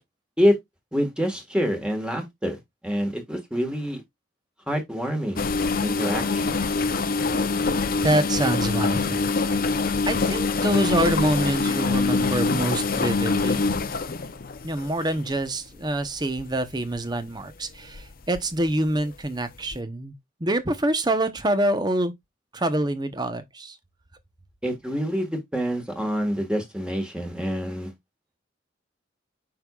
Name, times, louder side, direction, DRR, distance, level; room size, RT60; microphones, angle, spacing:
voice 1, 0.9-4.0 4.7-5.5 5.8-6.6 24.6-27.9, equal, 5° right, 1.5 m, -26 dB
sound 1, 5.4-15.5 16.2-16.5 17.0-17.2 17.9-18.4 18.7-18.8 19.7-19.8, left 4 dB, 50° left, 0.7 m, -25 dB
voice 2, 8.0-9.6 10.0-13.6 14.6-20.1 20.4-22.1 22.5-23.8, right 1 dB, 20° right, 0.9 m, -26 dB
7.6 x 5.4 x 2.4 m
head